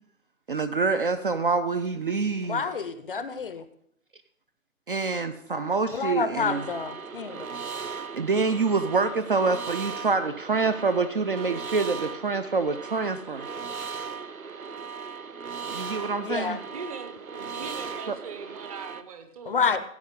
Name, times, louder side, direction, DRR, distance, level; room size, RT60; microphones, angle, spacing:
voice 1, 0.5-2.6 4.9-6.7 8.1-13.5 15.7-16.6 18.1-18.2, right 4 dB, 40° right, 11 dB, 0.5 m, -26 dB
voice 2, 2.5-3.6 5.9-7.6 16.2-16.6 19.5-19.8, left 5 dB, 40° left, 13 dB, 0.6 m, -28 dB
sound 1, 6.4-19.0, right 5 dB, 80° right, 0.8 m, -38 dB
voice 3, 16.7-19.6, right 5 dB, 25° right, 8 dB, 0.9 m, -40 dB
14.5 x 8.4 x 3.7 m, 0.67 s
figure-of-eight pair, 130°, 42 cm